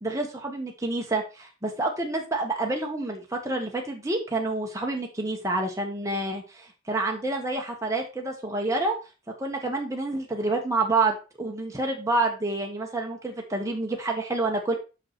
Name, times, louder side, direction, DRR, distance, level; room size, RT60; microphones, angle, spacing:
voice 1, 0.0-8.9 9.4-14.7, right 2 dB, 15° right, 1 dB, 1.3 m, -28 dB
6.5 x 5.9 x 4.3 m, 0.31 s
head